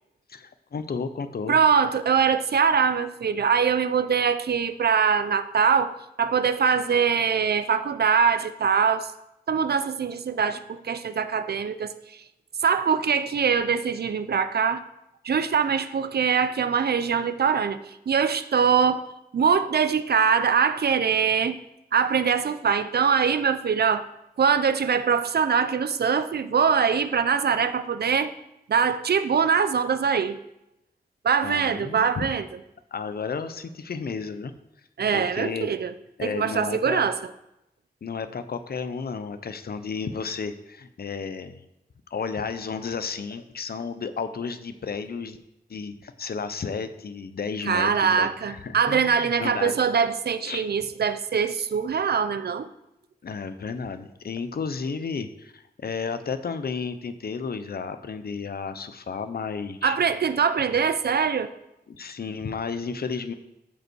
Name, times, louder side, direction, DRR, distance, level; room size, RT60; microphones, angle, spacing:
voice 1, 0.3-1.6 31.4-32.3 32.9-34.5 35.1-35.7 36.2-37.1 38.0-41.5 42.1-45.4 45.7-49.8 50.4-50.7 53.2-60.0 62.0-63.3, left 5 dB, 70° left, 0.8 m, -32 dB
voice 2, 1.5-9.1 9.5-12.2 12.6-14.8 15.2-19.0 19.3-21.6 21.9-24.1 24.4-28.3 28.7-30.4 31.2-32.5 35.0-35.9 36.2-37.2 47.7-52.7 59.8-61.5, right 6 dB, 70° right, 0.6 m, -23 dB
14.0 x 5.4 x 4.6 m
wide cardioid pair, 100°, 17 cm